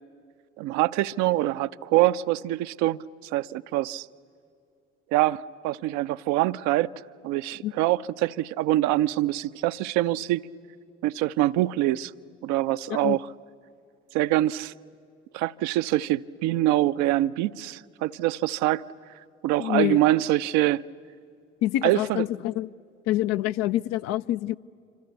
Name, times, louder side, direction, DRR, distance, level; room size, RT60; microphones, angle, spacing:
voice 1, 0.6-3.0 3.3-4.1 5.1-6.9 7.2-10.4 11.0-12.1 12.4-13.2 14.1-14.7 15.3-18.8 19.4-20.8 21.8-22.2, right 15 dB, 60° right, 0.6 m, -24 dB
voice 2, 19.6-20.0 21.6-22.7 23.1-24.5, left 14 dB, 50° left, 0.6 m, -26 dB
26.5 x 26.0 x 8.3 m
figure-of-eight pair, 55°, 33 cm